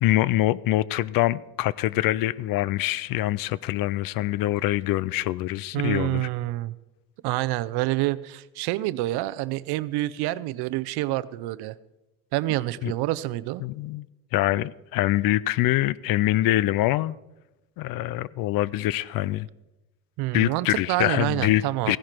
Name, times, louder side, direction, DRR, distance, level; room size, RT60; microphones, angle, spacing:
voice 1, 0.0-6.3 12.8-12.9 13.6-14.1 14.3-17.2 17.8-19.5 20.3-22.0, left 15 dB, 65° left, 0.5 m, -24 dB
voice 2, 5.7-6.7 7.2-11.7 12.3-13.6 20.2-22.0, right 17 dB, 80° right, 0.6 m, -27 dB
16.0 x 11.0 x 4.5 m
cardioid pair, 130°, 38 cm